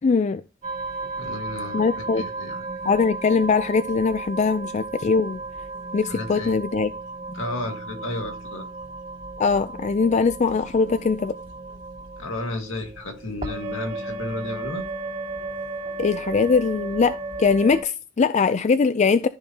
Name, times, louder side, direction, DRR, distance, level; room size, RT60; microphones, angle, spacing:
voice 1, 0.0-0.4 1.7-2.2 2.9-5.4 5.9-6.9 7.3-7.4 9.4-11.3 16.0-19.3, left 5 dB, 35° left, 0.4 m, -21 dB
sound 1, 0.6-17.8, right 3 dB, 40° right, 2.7 m, -34 dB
voice 2, 1.2-2.7 6.1-6.6 7.3-8.7 12.2-14.9, left 2 dB, 75° left, 2.0 m, -33 dB
14.0 x 5.2 x 2.8 m
head